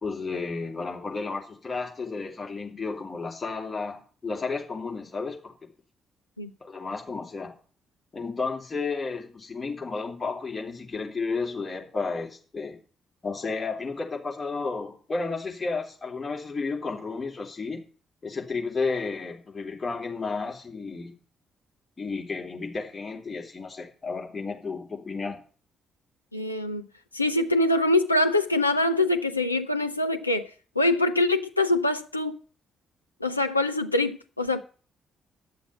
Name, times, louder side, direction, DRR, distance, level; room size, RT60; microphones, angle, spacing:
voice 1, 0.0-5.7 6.6-7.6 8.1-12.8 13.2-17.8 18.2-21.1 22.0-25.4, left 4 dB, 30° left, 3.4 m, -32 dB
voice 2, 26.3-26.9 27.1-30.5 30.8-32.4 33.2-34.6, left 2 dB, 90° left, 0.5 m, -24 dB
11.0 x 6.9 x 7.8 m
figure-of-eight pair, 40°, 0 cm